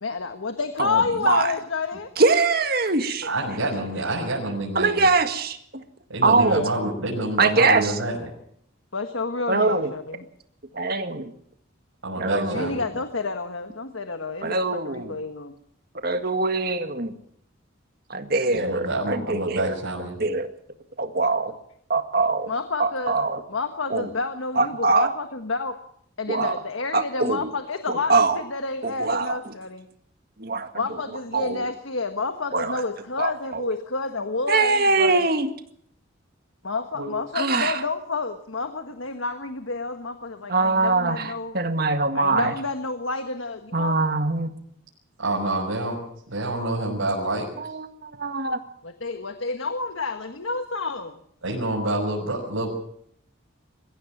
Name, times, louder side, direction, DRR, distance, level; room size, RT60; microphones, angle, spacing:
voice 1, 0.0-2.1 6.4-6.8 8.9-10.3 12.5-15.5 22.5-23.2 23.5-25.8 26.2-29.9 30.7-35.3 36.6-41.6 42.1-44.0 48.8-51.2, left 3 dB, 80° left, 8 dB, 1.4 m, -29 dB
voice 2, 2.2-3.3 4.7-5.8 6.2-6.6 7.4-7.9 9.5-9.9 10.7-11.3 12.1-12.7 14.4-15.2 16.0-17.1 18.1-19.7 20.2-20.5 21.0-21.5 21.9-22.5 22.8-23.4 23.9-24.1 24.5-25.1 26.3-26.5 26.9-27.5 27.9-28.4 28.8-29.4 30.4-30.7 31.3-31.6 32.5-32.8 33.2-33.6 34.5-35.5 37.3-37.8 40.5-42.5 43.7-44.5 47.6-48.6, right 3 dB, 45° right, 7 dB, 1.9 m, -23 dB
voice 3, 3.2-5.0 6.1-8.3 12.0-12.8 18.5-20.2 36.9-37.1 45.2-46.0 46.3-47.5 51.4-52.7, right 1 dB, 85° right, -3 dB, 6.0 m, -27 dB
22.5 x 16.0 x 7.4 m, 0.68 s
head